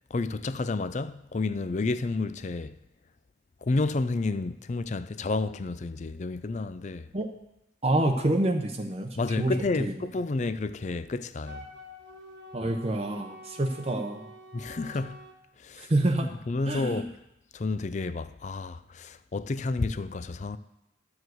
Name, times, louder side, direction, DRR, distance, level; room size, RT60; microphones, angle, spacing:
voice 1, 0.1-2.8 3.6-7.1 9.2-11.7 14.5-15.2 15.6-15.9 16.2-17.1 17.5-20.6, left 3 dB, 40° left, 0.4 m, -30 dB
voice 2, 7.8-9.1 9.4-9.5 9.8-9.9 12.5-14.2 15.8-16.3 16.6-17.0, right 1 dB, 30° right, 0.7 m, -27 dB
Wind instrument woodwind instrument, 11.4-15.4, equal, 75° right, 1.5 m, -47 dB
12.5 x 4.8 x 7.9 m
head